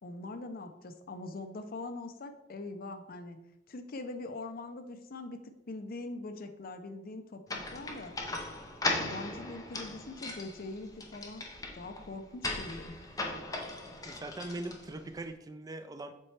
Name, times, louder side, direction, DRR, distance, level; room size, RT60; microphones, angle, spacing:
voice 1, 0.0-3.4 3.7-8.2 8.9-11.4 11.7-13.0, left 2 dB, 50° left, 8 dB, 0.6 m, -42 dB
sound 1, 7.5-15.1, left 2 dB, 20° left, 0.7 m, -38 dB
voice 2, 14.1-16.1, right 2 dB, 20° right, 9 dB, 0.3 m, -41 dB
7.5 x 4.2 x 3.3 m, 0.90 s
head